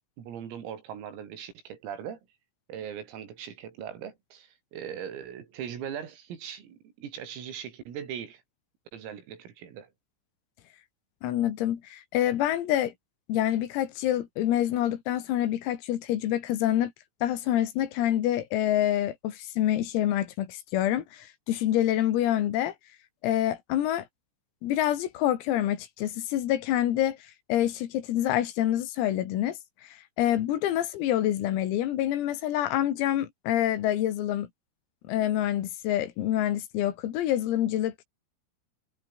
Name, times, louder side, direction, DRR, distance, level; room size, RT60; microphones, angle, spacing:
voice 1, 0.2-2.2 2.7-8.4 8.9-9.9, right 8 dB, 85° right, 6.5 m, -40 dB
voice 2, 11.2-12.9 13.3-16.9 17.2-22.7 23.2-24.1 24.6-27.2 27.5-29.6 30.2-34.5 35.1-38.1, left 12 dB, 90° left, 4.9 m, -27 dB
omnidirectional pair, 5.9 m